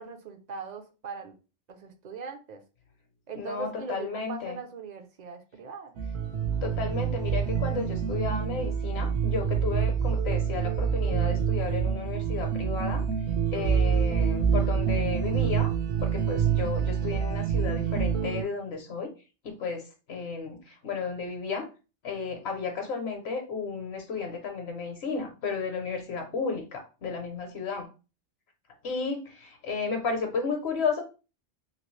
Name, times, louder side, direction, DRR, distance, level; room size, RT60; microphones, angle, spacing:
voice 1, 0.0-1.4 1.7-2.6 3.3-5.9, right 4 dB, 55° right, 6 dB, 0.5 m, -40 dB
voice 2, 3.3-4.6 6.6-13.0 13.5-15.7 16.0-19.1 19.4-21.7 22.0-27.9 28.8-31.0, left 5 dB, 65° left, 4 dB, 0.9 m, -33 dB
sound 1, 6.0-18.4, right 7 dB, 75° right, 0.9 m, -27 dB
2.9 x 2.8 x 3.1 m, 0.32 s
omnidirectional pair, 1.2 m